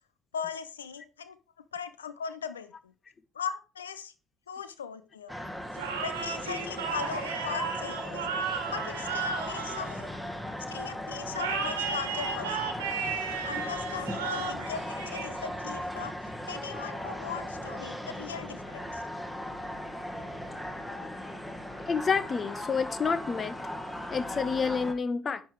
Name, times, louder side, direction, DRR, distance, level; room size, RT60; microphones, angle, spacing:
voice 1, 0.3-1.4 1.7-2.9 3.3-4.1 4.5-5.3 6.0-8.3 8.7-10.0 10.7-12.7 13.4-19.0, left 7 dB, 80° left, 14 dB, 0.5 m, -39 dB
sound 1, 5.3-24.9, left 1 dB, 5° left, 1.5 m, -38 dB
sound 2, 5.7-10.6 11.3-15.7, right 5 dB, 75° right, 1.4 m, -34 dB
voice 2, 21.9-23.6 24.1-25.4, left 5 dB, 35° left, 15 dB, 0.7 m, -29 dB
10.5 x 5.4 x 4.6 m, 0.34 s
figure-of-eight pair, 50°, 0 cm